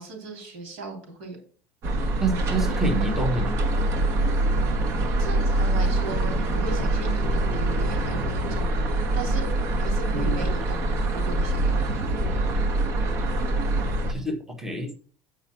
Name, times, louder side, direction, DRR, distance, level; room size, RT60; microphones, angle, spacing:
voice 1, 0.0-1.4 5.2-9.5 9.8-12.0, right 3 dB, 90° right, 2 dB, 3.1 m, -37 dB
sound 1, 1.8-14.1, right 2 dB, 45° right, 1.1 m, -24 dB
voice 2, 2.2-3.6 10.1-10.4 14.1-14.9, right 2 dB, 5° right, 3 dB, 1.3 m, -27 dB
8.2 x 4.9 x 4.4 m, 0.43 s
cardioid pair, 140°, 6 cm